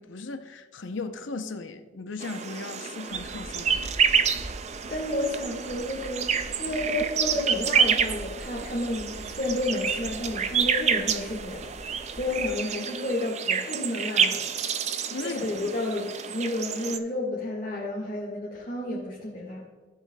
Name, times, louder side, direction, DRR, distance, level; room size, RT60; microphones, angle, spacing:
voice 1, 0.0-3.9 15.1-15.7, left 3 dB, 80° left, 0.7 m, -37 dB
sound 1, 2.2-17.0, right 7 dB, 35° right, 0.4 m, -28 dB
sound 2, 3.1-12.5, right 1 dB, 15° left, 2.4 m, -44 dB
voice 2, 4.9-14.4 15.2-19.6, left 1 dB, 40° left, 1.7 m, -31 dB
14.5 x 7.3 x 2.3 m
head